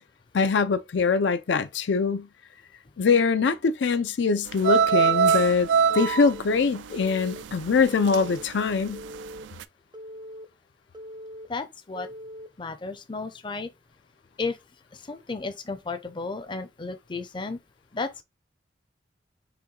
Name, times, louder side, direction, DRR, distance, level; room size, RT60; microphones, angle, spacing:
voice 1, 0.3-2.3 3.0-5.7 5.9-9.0, left 5 dB, 80° left, 0.5 m, -23 dB
sound 1, 4.5-8.4 8.7-9.2 9.6-9.7, right 6 dB, 85° right, 0.3 m, -23 dB
Telephone, 4.9-5.4 5.9-6.4 6.9-7.4 7.9-8.4 8.9-9.4 9.9-10.5 10.9-11.5 12.0-12.5, equal, 25° right, 0.5 m, -41 dB
voice 2, 11.5-12.1 12.6-13.7 14.4-14.6 14.9-17.6 17.9-18.2, left 3 dB, 25° left, 0.5 m, -33 dB
5.7 x 2.3 x 3.8 m
head